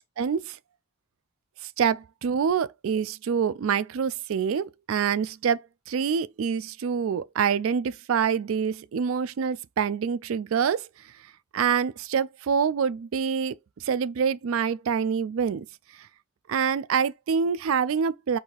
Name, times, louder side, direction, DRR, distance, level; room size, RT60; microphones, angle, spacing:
voice 1, 0.2-0.6 1.6-10.9 11.5-13.6 13.8-15.7 16.5-18.4, right 6 dB, 80° right, 0.4 m, -26 dB
4.7 x 2.7 x 3.8 m
head